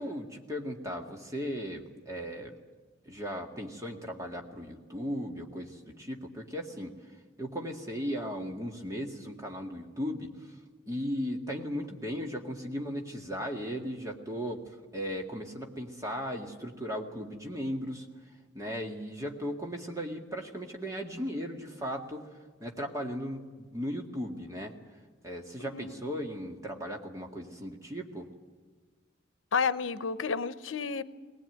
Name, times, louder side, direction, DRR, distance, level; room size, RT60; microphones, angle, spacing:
voice 1, 0.0-2.6 3.1-7.0 7.4-10.6 10.9-18.1 18.5-22.3 22.6-24.7 25.2-28.3, equal, 15° right, 1 dB, 2.0 m, -37 dB
voice 2, 25.6-25.9 29.5-31.0, left 5 dB, 90° left, 15 dB, 0.8 m, -31 dB
20.0 x 19.0 x 9.2 m, 1.4 s
head